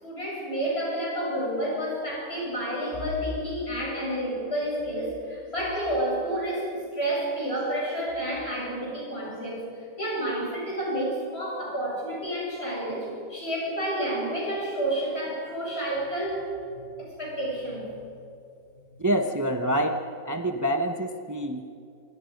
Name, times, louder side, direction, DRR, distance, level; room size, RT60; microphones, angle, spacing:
voice 1, 0.0-9.7 9.9-17.9, right 1 dB, 30° left, -3 dB, 7.8 m, -30 dB
voice 2, 19.0-21.6, right 1 dB, 25° right, 5 dB, 0.4 m, -26 dB
26.0 x 25.0 x 5.3 m, 2.5 s
omnidirectional pair, 2.0 m